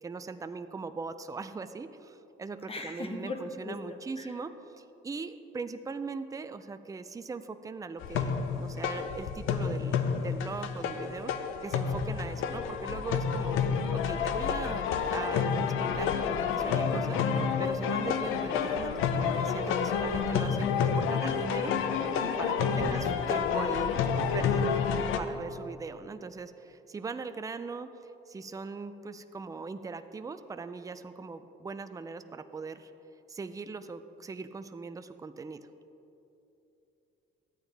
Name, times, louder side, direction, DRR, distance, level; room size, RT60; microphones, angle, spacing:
voice 1, 0.0-21.8 22.2-23.9 24.3-24.9 25.2-32.9 33.3-35.7, right 4 dB, 15° right, 10 dB, 0.4 m, -40 dB
voice 2, 2.7-3.8 4.2-4.3 22.7-23.1, left 2 dB, 30° left, 4 dB, 0.9 m, -38 dB
sound 1, 8.0-25.2, left 6 dB, 85° left, 0.6 m, -29 dB
12.5 x 8.8 x 3.4 m, 2.9 s
cardioid pair, 90°, 20 cm